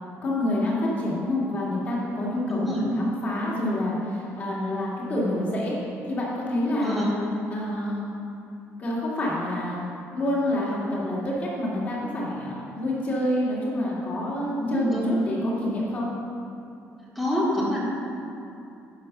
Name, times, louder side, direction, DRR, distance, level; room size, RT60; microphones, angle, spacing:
voice 1, 0.2-5.7 6.1-7.0 7.5-8.1 8.8-9.8 10.1-16.1, left 1 dB, 30° left, -5 dB, 2.4 m, -27 dB
voice 2, 2.5-2.8 6.8-7.2 14.6-15.1 17.1-17.8, equal, ahead, -7 dB, 1.7 m, -26 dB
10.5 x 6.3 x 6.0 m, 2.6 s
cardioid pair, 180°, 5 cm